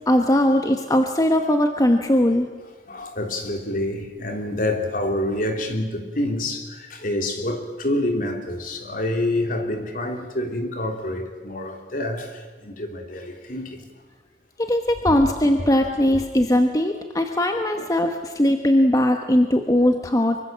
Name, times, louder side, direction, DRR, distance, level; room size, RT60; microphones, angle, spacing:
voice 1, 0.1-2.5 14.6-20.4, left 1 dB, 20° left, 1.2 m, -20 dB
voice 2, 2.9-13.9 16.1-16.2 17.8-17.9, left 1 dB, 50° left, 3.2 m, -27 dB
25.0 x 24.0 x 7.5 m
head